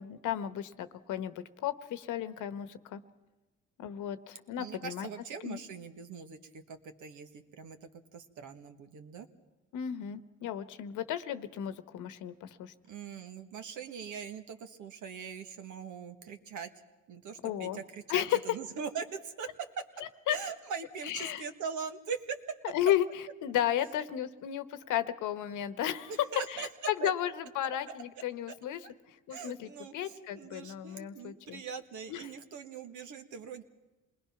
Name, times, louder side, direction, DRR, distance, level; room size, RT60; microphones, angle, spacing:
voice 1, 0.0-3.0 3.8-5.1 5.4-5.6 9.7-12.7 17.4-17.8 18.1-18.4 20.3-20.4 21.0-21.4 22.7-23.1 23.4-26.1 26.5-28.8 29.3-29.7 29.9-31.6 32.1-32.3, left 11 dB, 85° left, 12 dB, 1.1 m, -34 dB
voice 2, 4.6-9.3 12.9-16.7 17.1-19.5 20.3-22.4 26.1-26.7 27.0-27.1 28.8-28.9 29.3-33.6, right 6 dB, 80° right, 7 dB, 1.7 m, -41 dB
27.0 x 20.5 x 5.9 m, 1.1 s
cardioid pair, 90°, 30 cm